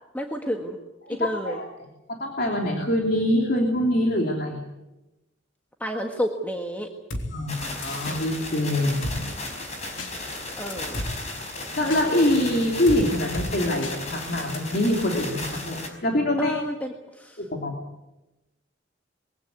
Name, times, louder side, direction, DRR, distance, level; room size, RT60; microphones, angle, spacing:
voice 1, 0.1-0.8 1.1-1.6 5.8-6.9 10.5-10.9 16.4-17.4, equal, 10° left, 3 dB, 1.6 m, -30 dB
voice 2, 1.1-1.6 2.1-4.6 7.3-9.3 11.8-16.5 17.4-17.7, left 1 dB, 55° left, 1 dB, 3.2 m, -24 dB
Drum kit, 7.1-7.3 7.8-8.2 9.0-9.2 10.0-10.1 10.7-11.1 11.9-12.0 12.9-13.0 13.3-13.5 13.8-14.0 14.5-14.6, left 1 dB, 90° left, 3.5 m, -32 dB
sound 1, 7.5-15.9, left 2 dB, 40° left, 5.2 m, -35 dB
22.5 x 16.5 x 9.5 m, 1.0 s
head